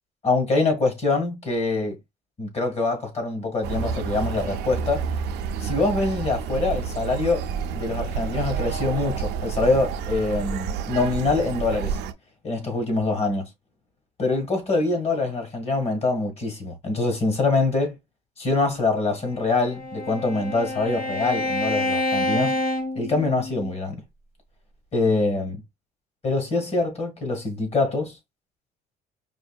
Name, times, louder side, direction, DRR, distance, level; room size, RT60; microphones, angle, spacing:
voice 1, 0.2-2.0 2.4-5.0 5.6-7.4 7.7-12.0 12.4-13.5 14.2-17.9 18.4-22.6 22.9-24.0 24.9-25.6 26.2-28.2, left 3 dB, 40° left, 1.6 m, -24 dB
sound 1, 3.6-12.1, right 7 dB, 80° right, 0.5 m, -29 dB
Bowed string instrument, 19.3-23.7, left 1 dB, 85° left, 1.6 m, -28 dB
5.0 x 2.7 x 2.3 m
cardioid pair, 110°, 17 cm